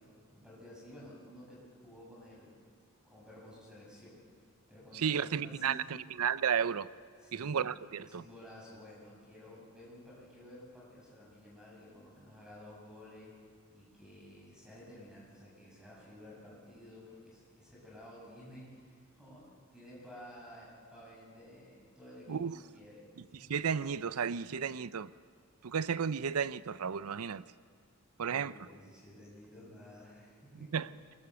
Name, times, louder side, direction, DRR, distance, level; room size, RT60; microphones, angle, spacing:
voice 1, 0.0-2.6 3.0-4.2 4.7-6.0 7.2-7.6 8.0-13.4 13.7-19.4 19.7-23.6 28.2-30.8, left 1 dB, 5° right, 7.8 m, -53 dB
voice 2, 4.9-6.9 7.3-8.2 22.3-22.6 23.3-25.1 25.6-27.4 28.2-28.5 30.7-30.9, right 7 dB, 85° right, 0.5 m, -33 dB
23.5 x 21.0 x 7.0 m
head